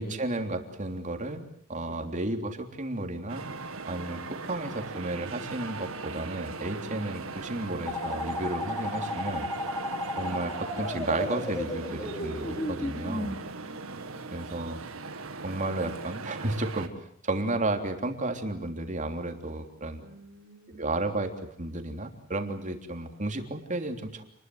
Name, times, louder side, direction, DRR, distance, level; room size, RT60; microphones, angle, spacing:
voice 1, 0.0-3.4 3.9-9.5 10.2-13.4 14.3-14.8 15.4-20.0 20.7-21.3 21.6-24.2, right 2 dB, 35° right, 5 dB, 3.4 m, -33 dB
voice 2, 1.8-2.1 6.7-7.0 9.7-10.6 13.2-14.3 20.0-21.0, right 1 dB, 60° right, 5 dB, 5.1 m, -51 dB
sound 1, 3.3-16.9, right 3 dB, 75° right, 2.0 m, -39 dB
sound 2, 7.9-13.3, left 1 dB, 15° left, 3.6 m, -34 dB
29.5 x 21.0 x 7.9 m, 0.69 s
head